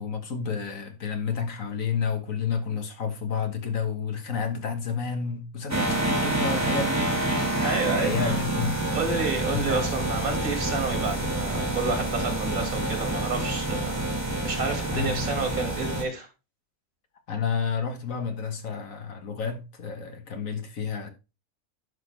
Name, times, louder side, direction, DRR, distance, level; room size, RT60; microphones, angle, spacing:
voice 1, 0.0-7.6 8.0-8.7 9.5-9.8 14.9-15.2 17.3-21.1, left 6 dB, 65° left, 1.7 m, -30 dB
sound 1, 5.7-16.0, right 1 dB, 10° right, 1.6 m, -27 dB
voice 2, 7.6-8.4 8.9-14.0 14.4-16.3, right 4 dB, 70° right, 2.7 m, -30 dB
10.5 x 6.0 x 3.3 m
omnidirectional pair, 1.5 m